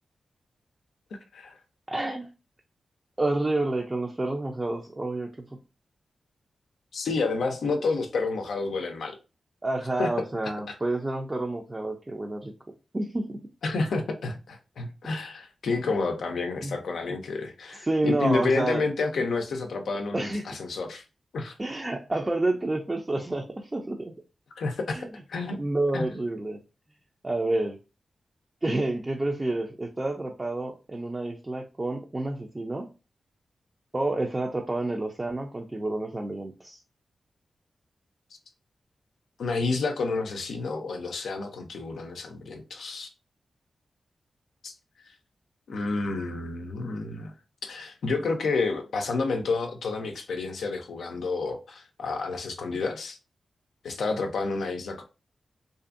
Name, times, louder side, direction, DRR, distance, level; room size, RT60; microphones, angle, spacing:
voice 1, 1.9-2.3 3.2-5.5 9.6-12.5 12.9-13.4 16.6-16.7 17.7-18.9 20.1-20.4 21.6-24.1 24.9-25.1 25.5-26.6 27.2-27.8 28.6-32.9 33.9-36.8, right 2 dB, 30° right, 0.4 m, -29 dB
voice 2, 6.9-9.2 10.0-10.1 13.6-21.0 21.3-21.6 24.6-25.6 25.9-26.1 39.4-43.1 44.6-44.7 45.7-47.3 47.6-53.2 53.8-55.0, left 3 dB, 85° left, 0.4 m, -29 dB
2.5 x 2.4 x 2.5 m
cardioid pair, 50°, 0 cm